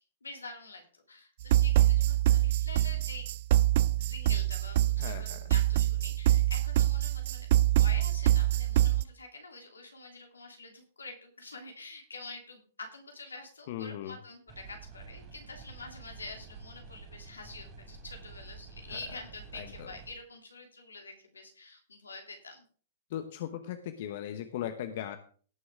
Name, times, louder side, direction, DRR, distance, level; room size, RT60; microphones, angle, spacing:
voice 1, 0.0-3.3 4.0-22.6, left 3 dB, 90° left, 3 dB, 2.9 m, -47 dB
sound 1, 1.4-9.0, right 13 dB, 55° right, 0.3 m, -25 dB
voice 2, 5.0-5.4 13.7-14.2 18.9-19.0 19.5-19.9 23.1-25.2, left 11 dB, 55° left, 9 dB, 1.0 m, -38 dB
sound 2, 14.5-20.1, right 5 dB, 30° right, 2.8 m, -49 dB
17.5 x 6.3 x 3.7 m, 0.43 s
hypercardioid pair, 115°, 0 cm